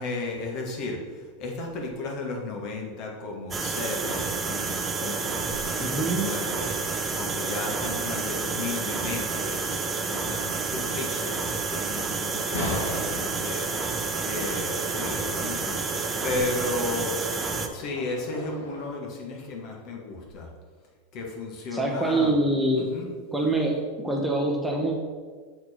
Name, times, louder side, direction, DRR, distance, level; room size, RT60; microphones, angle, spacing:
voice 1, 0.0-17.1 17.7-20.5 21.1-22.3 22.7-23.1, left 3 dB, 50° left, 0 dB, 1.4 m, -34 dB
sound 1, 3.5-17.7, right 4 dB, 25° right, 0.6 m, -29 dB
voice 2, 5.8-6.3 21.7-22.9 23.3-24.9, right 2 dB, 5° right, 0 dB, 1.0 m, -25 dB
sound 2, 12.5-18.9, left 2 dB, 80° left, 1.3 m, -38 dB
6.9 x 4.2 x 4.3 m, 1.5 s
hypercardioid pair, 90°, 0 cm